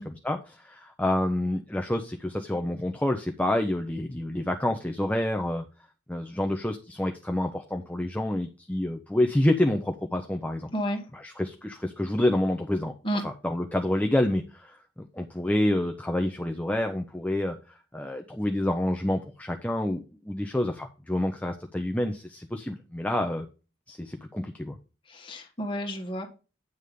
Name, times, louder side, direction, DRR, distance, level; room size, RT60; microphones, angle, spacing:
voice 1, 0.1-5.6 6.1-10.7 11.1-12.9 13.2-14.8 15.1-17.6 17.9-23.5 23.9-24.8, left 1 dB, 10° left, 4 dB, 0.6 m, -28 dB
voice 2, 10.7-11.0 13.0-13.2 25.1-26.3, equal, 30° left, 2 dB, 1.6 m, -31 dB
9.4 x 3.5 x 6.6 m, 0.32 s
head